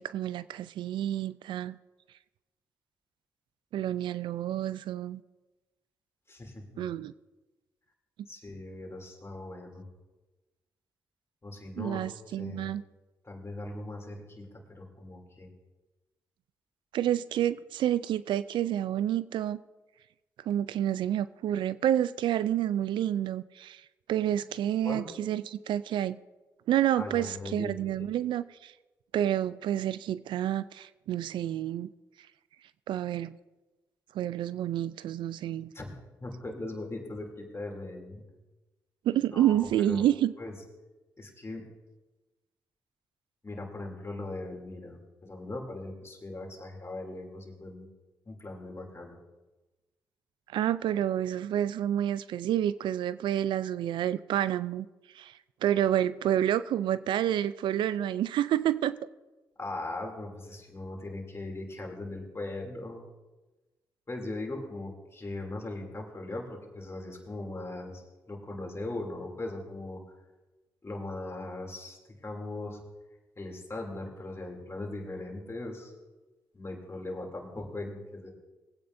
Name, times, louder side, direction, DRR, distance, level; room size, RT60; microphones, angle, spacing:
voice 1, 0.0-1.8 3.7-5.2 6.8-7.1 11.8-12.8 16.9-19.6 20.5-23.8 24.1-26.2 26.7-28.7 29.1-31.9 32.9-33.4 34.1-35.7 39.1-40.3 50.5-54.9 55.1-55.3 55.6-59.0, right 11 dB, 80° right, 0.3 m, -29 dB
voice 2, 6.3-6.9 8.3-9.8 11.4-12.7 13.2-15.5 24.8-25.1 27.0-27.9 35.7-35.9 36.2-38.2 39.3-40.1 40.4-40.5 41.2-41.7 43.4-47.9 48.2-49.2 59.6-63.0 64.1-70.0 70.8-72.0 72.2-72.8 73.4-75.9 76.5-78.3, left 2 dB, 30° left, 2.9 m, -39 dB
20.5 x 8.7 x 2.6 m
supercardioid pair, 45°, 8 cm